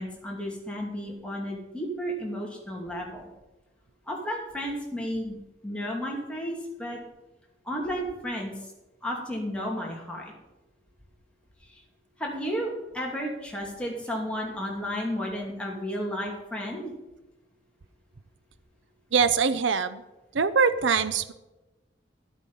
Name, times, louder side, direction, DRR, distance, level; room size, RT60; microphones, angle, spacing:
voice 1, 0.0-3.3 4.1-5.4 5.6-7.0 7.7-8.5 9.0-10.2 12.2-16.9, equal, 5° left, -2 dB, 2.5 m, -32 dB
voice 2, 19.1-20.0 20.3-21.3, right 5 dB, 80° right, 14 dB, 0.6 m, -23 dB
12.5 x 8.4 x 5.5 m, 1.0 s
head